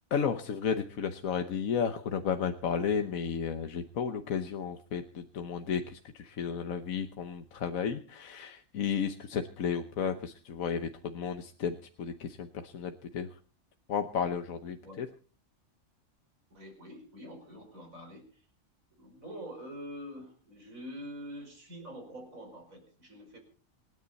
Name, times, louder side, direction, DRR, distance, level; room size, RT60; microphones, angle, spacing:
voice 1, 0.1-13.3 13.9-15.1, left 7 dB, 80° left, 7 dB, 1.4 m, -33 dB
voice 2, 16.5-18.4 18.9-23.4, equal, 75° right, 3 dB, 5.3 m, -45 dB
27.0 x 10.0 x 4.1 m, 0.40 s
omnidirectional pair, 1.4 m